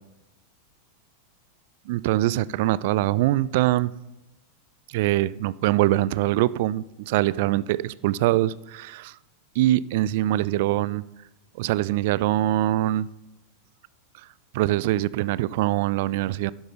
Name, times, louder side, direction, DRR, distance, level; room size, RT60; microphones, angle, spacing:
voice 1, 1.9-3.9 4.9-9.1 9.6-11.0 11.6-13.1 14.5-16.5, right 15 dB, 50° right, 0.3 m, -23 dB
11.5 x 11.0 x 3.9 m
figure-of-eight pair, 90°, 0 cm